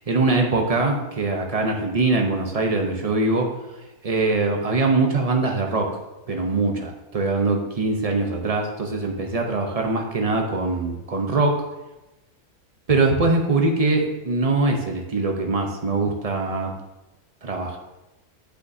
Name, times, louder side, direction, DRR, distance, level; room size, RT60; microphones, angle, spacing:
voice 1, 0.1-3.5 4.0-6.0 6.3-11.7 12.9-16.7 17.4-17.8, right 3 dB, 50° right, 2 dB, 0.4 m, -22 dB
8.2 x 6.2 x 2.6 m, 1.0 s
omnidirectional pair, 1.7 m